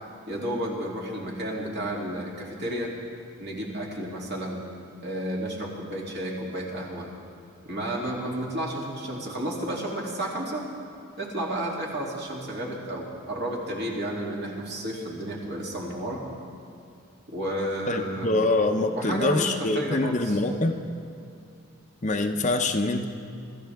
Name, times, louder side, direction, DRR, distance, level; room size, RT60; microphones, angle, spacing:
voice 1, 0.3-2.9 3.4-4.6 5.0-7.1 7.6-10.7 11.2-16.2 17.3-18.4 18.9-20.4, right 1 dB, 50° right, -3 dB, 2.8 m, -32 dB
voice 2, 17.9-20.8 22.0-23.1, left 2 dB, 35° left, 5 dB, 0.7 m, -24 dB
25.0 x 13.5 x 3.5 m, 2.4 s
head